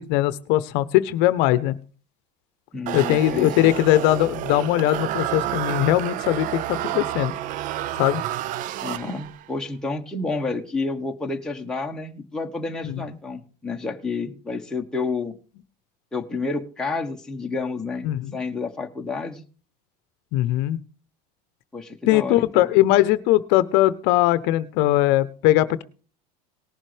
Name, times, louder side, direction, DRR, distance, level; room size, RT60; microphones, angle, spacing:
voice 1, 0.0-1.7 2.9-7.3 8.0-8.2 12.8-13.0 18.0-18.4 20.3-20.8 22.1-25.8, left 15 dB, 60° left, 15 dB, 0.8 m, -20 dB
voice 2, 2.7-3.7 8.8-15.3 16.1-18.1 18.3-19.4 21.7-22.7, left 3 dB, 5° left, 0 dB, 1.3 m, -30 dB
sound 1, 2.9-9.5, right 13 dB, 40° right, 0.5 m, -30 dB
19.0 x 7.4 x 3.4 m, 0.37 s
supercardioid pair, 130°, 20 cm